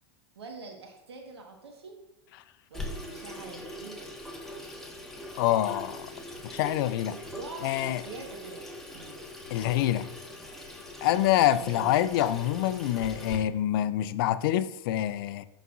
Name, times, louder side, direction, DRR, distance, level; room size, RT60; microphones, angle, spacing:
voice 1, 0.3-2.0 2.7-4.1 7.2-8.7 8.9-9.2 11.5-11.9, right 3 dB, 85° right, 2 dB, 1.3 m, -44 dB
Water tap faucet / Sink (filling or washing), 2.7-13.4, left 1 dB, 5° left, 1.1 m, -42 dB
voice 2, 5.4-6.1 6.4-7.2 7.6-8.0 9.5-10.1 11.0-15.5, left 12 dB, 60° left, 15 dB, 0.4 m, -26 dB
10.5 x 4.0 x 2.5 m, 0.90 s
hypercardioid pair, 100°, 13 cm